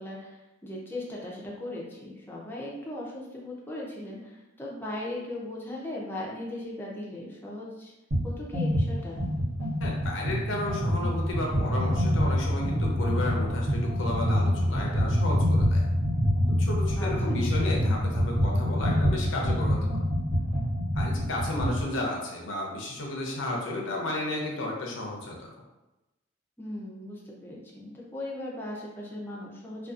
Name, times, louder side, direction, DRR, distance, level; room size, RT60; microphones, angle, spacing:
voice 1, 0.0-7.9 8.2-9.2 17.0-17.4 26.6-29.9, left 1 dB, 10° left, -4 dB, 0.4 m, -38 dB
sound 1, 8.1-8.3 8.5-21.8, equal, 80° right, 1.1 m, -26 dB
voice 2, 9.8-15.8 16.6-19.8 20.9-25.5, left 2 dB, 75° left, -1 dB, 0.6 m, -33 dB
2.5 x 2.3 x 2.4 m, 1.0 s
head